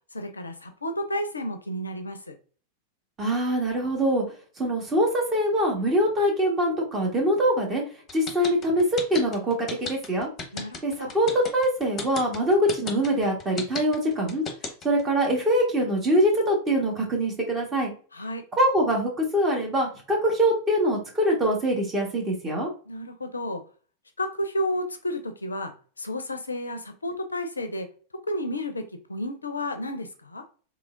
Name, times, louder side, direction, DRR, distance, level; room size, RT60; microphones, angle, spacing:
voice 1, 0.1-2.3 10.5-11.1 18.1-18.4 22.9-23.6 24.2-27.9 28.3-30.4, left 1 dB, 80° left, 7 dB, 0.5 m, -32 dB
voice 2, 3.2-4.2 4.6-7.8 8.1-10.3 10.8-14.4 14.8-17.9 18.6-22.7, equal, 20° right, -1 dB, 1.5 m, -23 dB
sound 1, 8.1-15.0, left 4 dB, 25° left, 0.8 m, -34 dB
3.6 x 3.0 x 2.5 m, 0.39 s
figure-of-eight pair, 90°, 0 cm